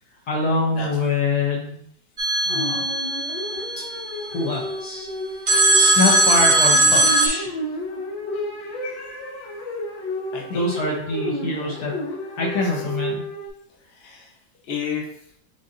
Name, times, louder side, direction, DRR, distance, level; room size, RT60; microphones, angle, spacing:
voice 1, 0.3-1.8 2.5-2.8 4.3-5.1 5.7-7.6 10.5-12.0 12.4-13.2, left 3 dB, 65° left, -2 dB, 1.1 m, -24 dB
sound 1, 2.2-4.4 5.5-7.3, right 3 dB, 85° right, 0.4 m, -19 dB
sound 2, 2.5-13.5, equal, 85° left, 1.9 m, -31 dB
voice 2, 8.8-9.7 10.3-10.8 12.3-12.9 13.8-14.3 14.7-15.1, left 6 dB, 40° left, -2 dB, 0.9 m, -35 dB
7.4 x 2.6 x 2.5 m, 0.69 s
omnidirectional pair, 2.0 m